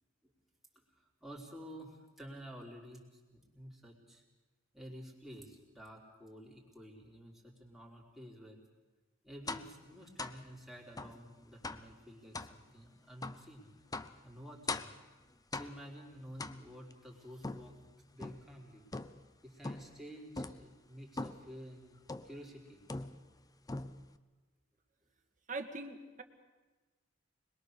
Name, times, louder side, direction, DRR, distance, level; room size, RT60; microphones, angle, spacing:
voice 1, 1.2-3.0 3.3-4.2 4.7-8.6 9.2-13.7 14.2-14.9 15.5-17.8 18.1-18.8 19.4-22.0 22.2-22.8, equal, ahead, -2 dB, 4.0 m, -51 dB
sound 1, 9.5-9.8 10.2-10.4 11.0-11.2 11.6-11.9 12.3-12.6 13.2-13.4 13.9-14.2 14.7-15.0 15.5-15.9 16.4-16.9 17.4-18.5 18.9-19.3 19.6-20.0 20.4-20.7 21.2-21.5 22.1-22.4 22.9-23.4 23.7-24.2, left 3 dB, 20° left, 0.7 m, -42 dB
voice 2, 25.5-26.2, right 3 dB, 40° right, 5 dB, 1.8 m, -41 dB
26.0 x 21.0 x 6.7 m, 1.2 s
head